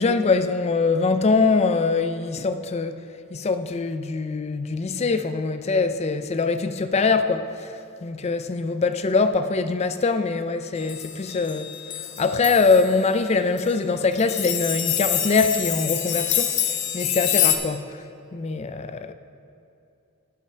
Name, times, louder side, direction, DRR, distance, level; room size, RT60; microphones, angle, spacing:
voice 1, 0.0-2.9 3.3-7.7 8.0-11.7 12.2-16.5 16.9-17.9 18.3-19.1, left 4 dB, 30° left, 0.4 m, -23 dB
sound 1, 10.8-12.9 13.6-13.7 14.1-17.6, left 10 dB, 55° left, 0.7 m, -26 dB
9.3 x 7.4 x 5.8 m
head